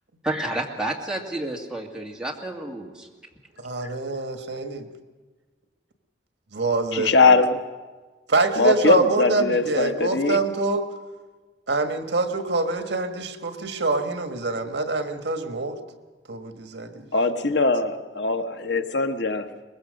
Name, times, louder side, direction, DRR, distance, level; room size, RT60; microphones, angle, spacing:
voice 1, 0.2-3.1 3.8-3.9, right 1 dB, 5° right, -1 dB, 2.3 m, -30 dB
voice 2, 3.6-4.9 6.5-7.4 8.3-10.9 11.7-15.8 16.3-17.1, right 3 dB, 75° right, 7 dB, 1.5 m, -25 dB
voice 3, 6.9-7.6 8.6-10.4 17.1-19.5, left 3 dB, 75° left, 8 dB, 1.1 m, -21 dB
23.0 x 20.5 x 6.4 m, 1.3 s
head